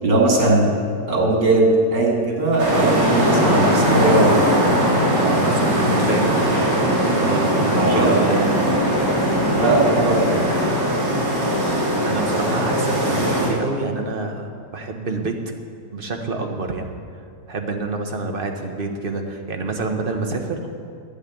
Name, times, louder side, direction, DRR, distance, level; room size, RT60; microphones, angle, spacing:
voice 1, 0.0-0.7 1.1-1.7 1.9-4.8 7.8-8.1 9.5-10.4, right 2 dB, 80° right, -1 dB, 3.1 m, -19 dB
sound 1, 2.6-13.5, equal, 50° right, 3.3 m, -19 dB
voice 2, 5.2-6.5 7.1-8.8 12.0-15.4 15.9-16.9 17.5-20.7, right 3 dB, 35° right, 3 dB, 1.1 m, -27 dB
10.5 x 9.0 x 8.3 m, 2.3 s
omnidirectional pair, 1.9 m